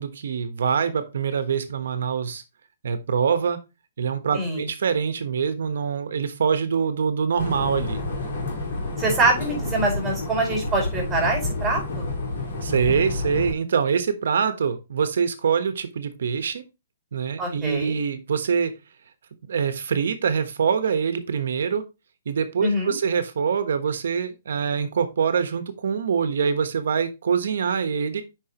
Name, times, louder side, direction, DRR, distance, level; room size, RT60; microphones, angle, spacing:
voice 1, 0.0-2.4 2.8-3.6 4.0-8.0 12.6-16.6 17.1-18.7 19.5-21.8 22.3-28.2, right 6 dB, 70° right, 10 dB, 1.2 m, -24 dB
sound 1, 7.4-13.5, left 2 dB, 60° left, 3.8 m, -29 dB
voice 2, 9.0-12.1 17.4-18.0 22.6-22.9, right 2 dB, 10° right, -1 dB, 4.8 m, -24 dB
8.6 x 5.3 x 3.0 m, 0.26 s
hypercardioid pair, 160°, 0 cm